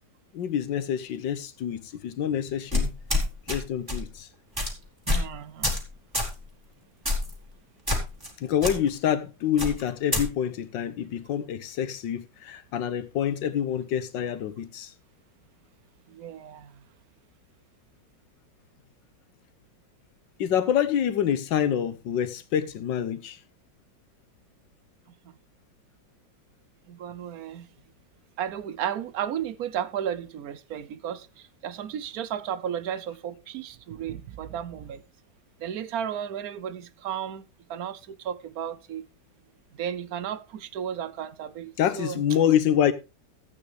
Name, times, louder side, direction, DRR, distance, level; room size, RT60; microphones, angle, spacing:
voice 1, 0.3-2.9 3.5-4.3 8.4-14.9 20.4-23.4 41.8-42.9, left 9 dB, 80° left, 1.7 m, -26 dB
sound 1, 2.7-3.6 3.9-4.1 4.6-4.7 5.1-5.3 5.6-5.9 6.1-6.3 7.1-7.3 7.9-8.3 8.6-8.7 9.6-10.2, left 2 dB, 10° right, 2.7 m, -26 dB
voice 2, 5.1-5.8 16.1-16.8 25.2-25.3 26.9-27.7 28.4-35.0 35.6-37.4 37.7-39.1 39.7-42.2, right 9 dB, 65° right, 1.0 m, -34 dB
14.0 x 8.8 x 3.4 m
omnidirectional pair, 2.0 m